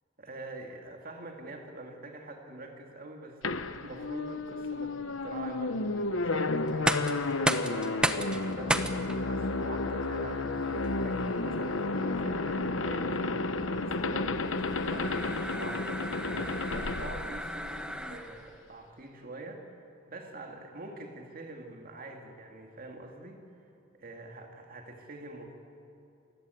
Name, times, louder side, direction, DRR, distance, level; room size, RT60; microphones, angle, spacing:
voice 1, 0.2-8.8 9.2-14.4 14.8-25.5, right 2 dB, 45° right, 3 dB, 2.3 m, -45 dB
sound 1, 3.4-18.0, left 3 dB, 65° left, 1.0 m, -32 dB
sound 2, 6.7-18.6, right 1 dB, 5° right, 0.9 m, -35 dB
sound 3, 11.9-18.2, left 1 dB, 35° left, 1.7 m, -49 dB
28.5 x 16.5 x 9.2 m, 2.7 s
head